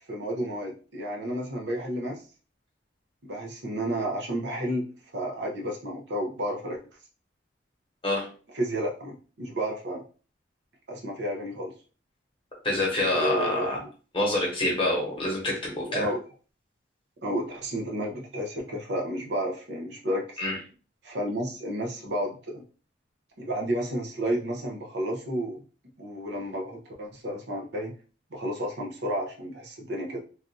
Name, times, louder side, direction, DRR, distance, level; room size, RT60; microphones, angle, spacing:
voice 1, 0.1-2.2 3.2-4.9 5.1-6.8 8.5-10.0 10.9-11.7 13.1-13.9 15.9-16.2 17.2-20.4 21.0-22.6 23.4-25.6 26.0-27.9 28.3-30.2, right 1 dB, 65° right, 1 dB, 0.7 m, -31 dB
voice 2, 12.6-13.8 14.1-16.1 20.4-20.6, left 1 dB, 30° left, -2 dB, 1.0 m, -26 dB
3.3 x 2.4 x 2.6 m, 0.37 s
head